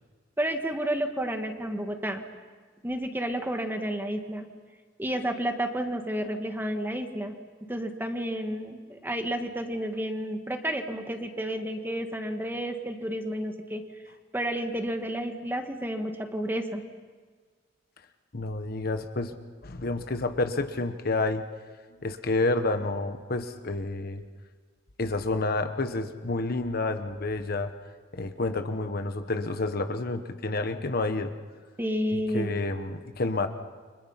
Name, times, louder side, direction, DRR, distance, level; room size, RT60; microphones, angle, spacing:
voice 1, 0.4-2.2 2.8-4.5 5.0-7.3 7.7-13.8 14.3-16.8 31.8-32.6, equal, 10° right, 5 dB, 1.7 m, -31 dB
voice 2, 18.3-19.4 19.6-21.4 22.0-24.2 25.0-27.7 28.1-31.3 32.1-33.5, left 2 dB, 55° left, 8 dB, 1.1 m, -29 dB
30.0 x 25.0 x 5.8 m, 1.5 s
head